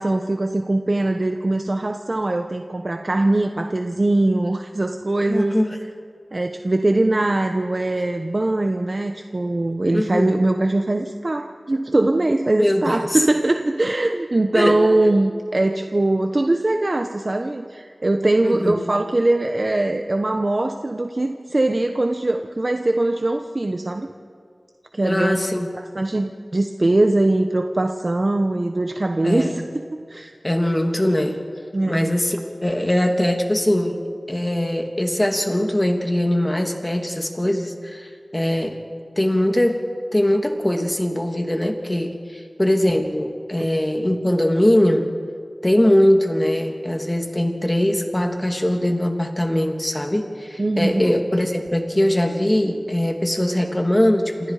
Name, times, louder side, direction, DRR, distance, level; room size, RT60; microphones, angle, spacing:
voice 1, 0.0-5.6 6.3-24.1 24.9-25.4 25.7-29.6 30.1-30.3 31.7-32.2 43.6-43.7 50.6-51.1, right 2 dB, 45° right, 5 dB, 1.2 m, -21 dB
voice 2, 5.3-5.8 9.9-10.4 12.6-13.2 14.5-14.8 18.4-18.8 25.0-25.7 29.2-29.6 30.4-31.4 31.9-38.8 39.2-39.8 40.1-45.1 45.6-54.5, left 1 dB, 20° left, 3 dB, 2.9 m, -21 dB
28.5 x 28.0 x 5.1 m, 2.2 s
wide cardioid pair, 55°, 0 cm